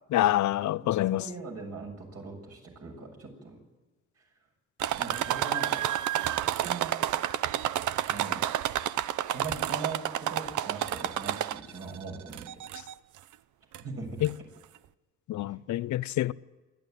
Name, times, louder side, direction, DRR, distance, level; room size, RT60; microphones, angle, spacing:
voice 1, 0.1-1.3 14.2-14.3 15.3-16.3, left 13 dB, 70° left, 0.6 m, -26 dB
voice 2, 0.8-3.6 5.0-5.8 6.1-6.3 6.6-6.9 8.1-8.5 9.2-12.6 13.8-14.2, right 4 dB, 55° right, 7.2 m, -40 dB
sound 1, 4.8-11.8 12.3-12.9 13.7-13.8 14.2-14.3, right 12 dB, 75° right, 0.7 m, -30 dB
27.0 x 12.0 x 9.3 m
cardioid pair, 90°, 30 cm